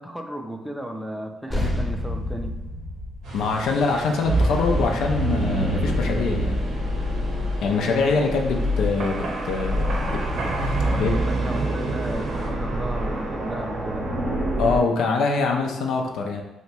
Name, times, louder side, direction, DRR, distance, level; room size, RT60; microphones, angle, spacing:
voice 1, 0.0-2.6 10.3-14.1, right 1 dB, 5° right, 4 dB, 0.4 m, -35 dB
sound 1, 1.5-6.3, left 1 dB, 15° left, 0.8 m, -31 dB
sound 2, 3.2-12.5, equal, 85° right, 1.0 m, -44 dB
voice 2, 3.3-6.6 7.6-10.2 11.0-11.2 14.6-16.4, left 4 dB, 80° left, 2 dB, 0.4 m, -24 dB
sound 3, 4.3-14.8, right 1 dB, 60° right, 0.7 m, -25 dB
2.8 x 2.2 x 4.1 m, 0.98 s
cardioid pair, 90°, 0 cm